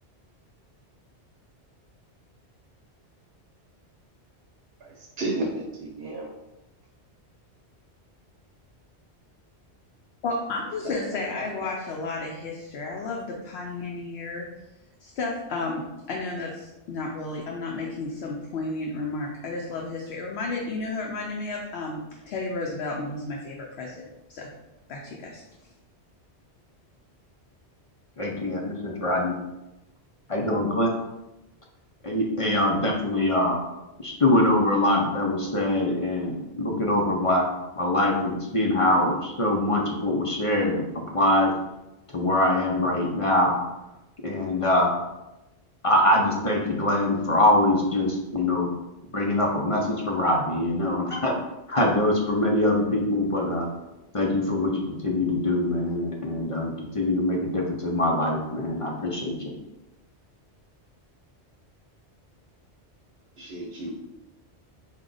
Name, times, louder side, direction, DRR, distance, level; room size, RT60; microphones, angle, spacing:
voice 1, 4.8-6.3 11.4-11.5 63.4-64.0, right 2 dB, 65° right, -1 dB, 0.9 m, -32 dB
voice 2, 10.2-14.5 15.0-15.8 16.1-22.0 22.3-24.5 24.9-25.4, left 3 dB, 70° left, -1 dB, 0.8 m, -32 dB
voice 3, 28.2-29.3 30.3-30.9 32.0-33.6 34.0-37.4 37.8-40.8 41.1-41.5 42.1-43.6 44.2-44.9 45.8-48.7 49.1-51.4 51.7-53.7 54.1-59.5, left 1 dB, 45° left, -1 dB, 0.5 m, -23 dB
4.7 x 2.2 x 3.8 m, 0.98 s
omnidirectional pair, 1.2 m